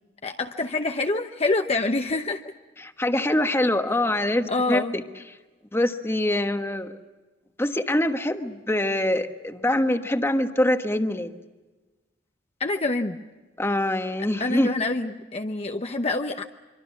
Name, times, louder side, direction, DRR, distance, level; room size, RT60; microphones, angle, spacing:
voice 1, 0.2-2.5 4.5-5.0 12.6-13.2 14.4-16.5, left 2 dB, 35° left, 5 dB, 0.9 m, -26 dB
voice 2, 2.8-5.0 5.7-6.9 7.6-11.3 13.6-14.7, left 1 dB, 15° left, 7 dB, 1.3 m, -24 dB
25.0 x 24.5 x 7.2 m, 1.2 s
head